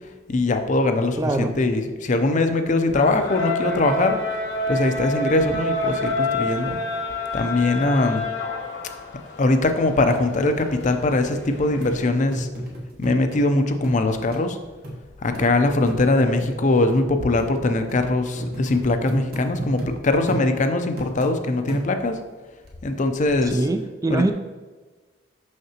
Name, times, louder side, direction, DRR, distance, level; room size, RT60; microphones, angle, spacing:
voice 1, 0.3-4.2 4.7-6.8 7.3-8.2 9.4-12.5 13.0-14.6 15.2-22.2 22.8-23.6 24.1-24.3, left 2 dB, 45° left, 7 dB, 0.5 m, -21 dB
voice 2, 1.2-1.5 23.5-24.3, right 2 dB, 20° right, 7 dB, 0.3 m, -23 dB
sound 1, 2.9-12.1, left 2 dB, 75° left, 0.9 m, -28 dB
sound 2, 10.8-10.9 11.3-11.4 11.8-11.9 12.3-13.4 13.8-14.0 14.3-14.4 14.8-15.0 15.3-15.5 15.9-16.0 16.4-16.5 16.9-17.0 17.4-17.5 17.9-18.0 18.4-19.9 20.3-20.5 21.0-21.3 21.7-22.1 22.7-22.8, right 1 dB, 60° right, 1.2 m, -31 dB
6.4 x 5.8 x 2.9 m, 1.3 s
head